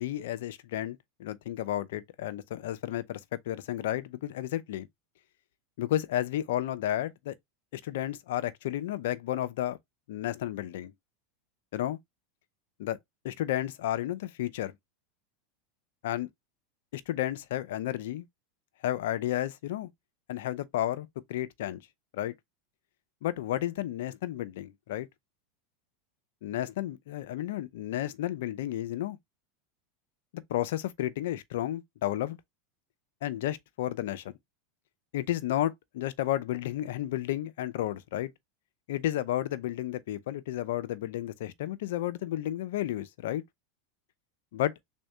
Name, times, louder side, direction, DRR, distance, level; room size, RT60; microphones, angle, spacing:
voice 1, 0.0-4.9 5.8-7.3 7.7-9.8 10.1-10.9 11.7-12.0 12.8-13.0 13.2-14.7 16.0-16.3 16.9-18.2 18.8-19.9 20.3-21.8 22.1-22.3 23.2-25.1 26.4-29.2 30.3-32.4 33.2-34.3 35.1-38.3 38.9-43.4 44.5-44.7, left 13 dB, 75° left, 0.5 m, -32 dB
3.6 x 2.6 x 3.3 m
supercardioid pair, 115°, 0 cm